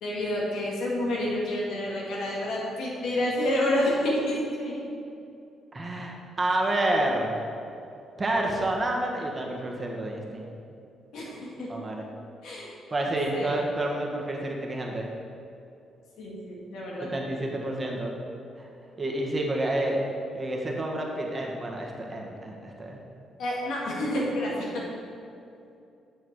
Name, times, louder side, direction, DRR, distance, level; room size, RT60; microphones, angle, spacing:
voice 1, 0.0-4.8 11.1-11.7 12.4-12.7 13.3-13.6 16.2-17.1 23.4-24.8, left 1 dB, 80° left, -4 dB, 2.2 m, -29 dB
voice 2, 5.7-7.4 8.2-10.5 11.7-12.0 12.9-15.1 17.0-18.1 18.6-18.7 19.0-20.0 20.3-23.0, right 1 dB, 25° right, 0 dB, 1.4 m, -29 dB
8.6 x 6.3 x 4.7 m, 2.6 s
cardioid pair, 90°, 0 cm